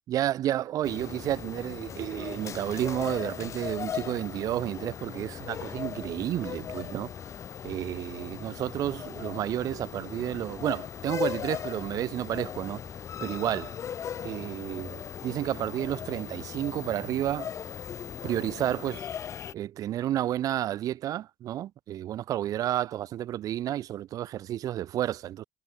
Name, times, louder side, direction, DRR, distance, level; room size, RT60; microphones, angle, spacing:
voice 1, 0.1-7.1 7.6-12.8 13.2-13.8 14.2-17.5 18.2-19.1 19.5-25.4, right 12 dB, 55° right, 2.9 m, -31 dB
sound 1, 0.8-19.5, left 8 dB, 45° left, 2.5 m, -38 dB
hypercardioid pair, 60°, 7 cm